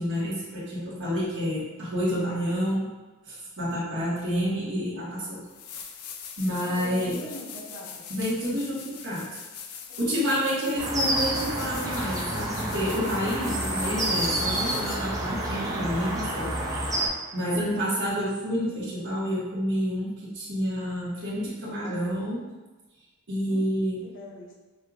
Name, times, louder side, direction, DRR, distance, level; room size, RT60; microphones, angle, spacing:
voice 1, 0.0-2.9 3.3-5.4 6.4-7.2 8.1-9.2 10.0-16.5 16.8-16.9 17.3-22.4 23.3-24.0, equal, 55° right, -7 dB, 1.4 m, -29 dB
sound 1, 5.0-5.1 5.5-15.2 18.0-18.1, left 7 dB, 85° left, 0.5 m, -42 dB
voice 2, 6.6-8.1 9.9-10.0 10.6-10.7 23.5-23.8 24.0-24.5, left 1 dB, 60° left, -4 dB, 1.2 m, -42 dB
sound 2, 10.8-17.1, right 1 dB, 15° right, 0.6 m, -29 dB
6.4 x 2.7 x 2.4 m, 1.2 s
head